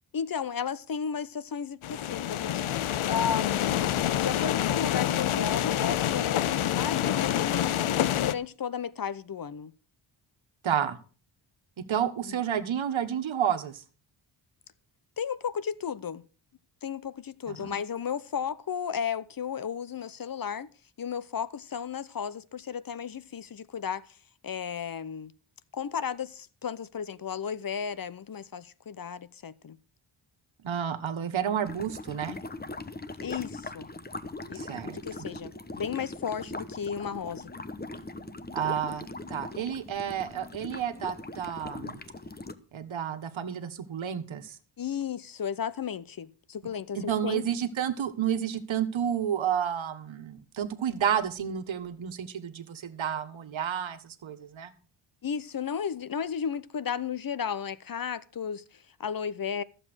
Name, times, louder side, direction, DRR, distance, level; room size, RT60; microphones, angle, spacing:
voice 1, 0.1-2.6 3.1-3.6 4.2-7.7 8.2-9.7 12.3-12.4 15.2-16.2 16.8-20.7 21.0-24.2 24.4-25.3 25.7-29.8 33.2-33.9 34.5-37.5 44.8-47.4 55.2-59.6, left 7 dB, 45° left, 0.8 m, -34 dB
sound 1, 1.8-8.3, left 11 dB, 85° left, 0.8 m, -27 dB
voice 2, 10.6-11.0 11.8-13.8 17.5-17.8 30.6-32.4 34.5-35.0 38.5-42.0 42.7-44.6 46.9-54.7, right 9 dB, 70° right, 1.6 m, -31 dB
sound 2, 31.6-42.5, left 2 dB, 20° left, 1.1 m, -40 dB
14.0 x 7.8 x 6.2 m
cardioid pair, 95°, 48 cm